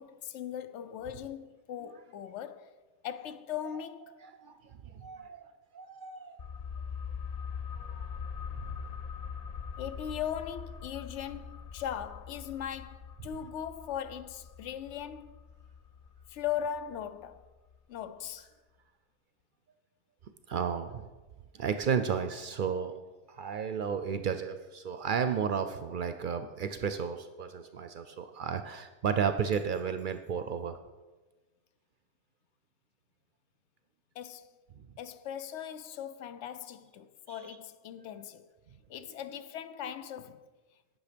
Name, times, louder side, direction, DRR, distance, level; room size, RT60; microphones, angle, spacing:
voice 1, 0.0-2.7 3.0-4.1 9.8-15.4 16.3-17.4 17.9-18.5 34.2-34.6 35.0-38.5 38.9-40.5, left 9 dB, 80° left, 0.9 m, -39 dB
voice 2, 4.2-6.4 8.5-8.8 20.5-21.1 21.5-22.9 23.3-30.8 37.3-37.6, right 7 dB, 60° right, 0.6 m, -33 dB
sound 1, 6.4-17.8 18.0-18.1, left 6 dB, 55° left, 0.4 m, -42 dB
9.5 x 6.1 x 5.1 m
omnidirectional pair, 1.2 m